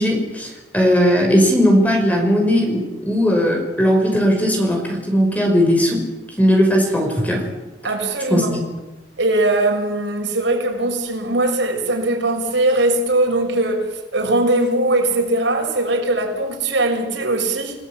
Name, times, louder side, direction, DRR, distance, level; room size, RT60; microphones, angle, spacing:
voice 1, 0.0-6.0 6.4-7.5 8.3-8.6, equal, 10° left, 2 dB, 5.6 m, -17 dB
voice 2, 7.8-8.5 9.2-17.7, right 2 dB, 85° right, 2 dB, 6.4 m, -20 dB
29.0 x 18.0 x 9.0 m, 1.1 s
head